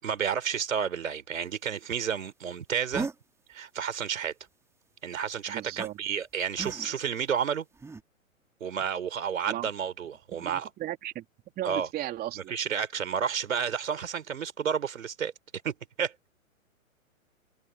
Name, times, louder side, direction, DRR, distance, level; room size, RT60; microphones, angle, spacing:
voice 1, 0.0-3.1 3.5-4.3 5.0-7.6 8.6-10.7 11.6-11.9 12.5-15.3 15.6-16.3, right 7 dB, 70° right, 4.0 m, -31 dB
sound 1, 2.9-3.2 5.8-5.9 6.6-7.1 7.7-8.0, right 4 dB, 5° right, 2.1 m, -35 dB
voice 2, 5.5-6.0 9.5-9.7 10.4-11.2 11.6-12.5, right 13 dB, 20° right, 2.9 m, -36 dB
hypercardioid pair, 125°, 42 cm